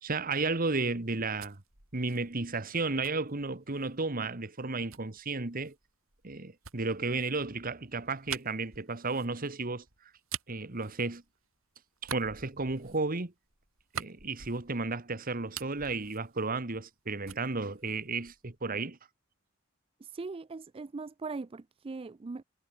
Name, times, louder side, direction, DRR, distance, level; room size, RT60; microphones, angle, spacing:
voice 1, 0.0-1.6 1.9-5.7 6.2-9.8 10.5-11.2 12.0-13.3 13.9-19.0, right 3 dB, 45° right, 1.5 m, -33 dB
sound 1, 1.0-4.0 4.9-11.6 12.0-15.0 15.3-17.0 17.3-18.6, right 8 dB, 85° right, 6.5 m, -46 dB
voice 2, 20.0-22.4, right 3 dB, 25° right, 0.4 m, -40 dB
head